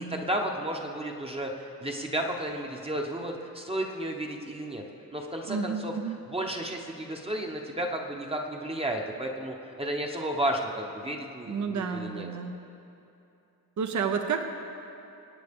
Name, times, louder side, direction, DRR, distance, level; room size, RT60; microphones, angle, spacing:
voice 1, 0.0-4.8 5.1-5.9 6.3-12.3, right 1 dB, 15° right, 1 dB, 1.0 m, -33 dB
voice 2, 5.5-6.2 11.5-12.6 13.8-14.4, right 5 dB, 50° right, 6 dB, 0.8 m, -31 dB
26.0 x 9.1 x 3.6 m, 2.8 s
wide cardioid pair, 160°, 37 cm